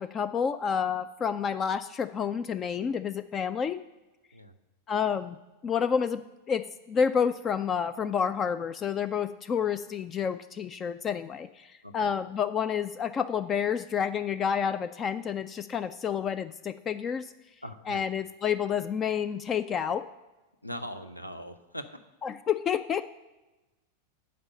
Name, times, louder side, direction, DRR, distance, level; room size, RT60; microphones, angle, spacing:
voice 1, 0.0-3.8 4.9-5.4 5.6-17.3 17.9-20.0 22.2-23.0, left 7 dB, 25° left, 14 dB, 0.3 m, -29 dB
voice 2, 11.8-12.1 17.6-18.0 20.6-21.9, equal, 90° left, 9 dB, 0.7 m, -40 dB
9.4 x 5.4 x 7.3 m, 1.1 s
figure-of-eight pair, 90°, 0 cm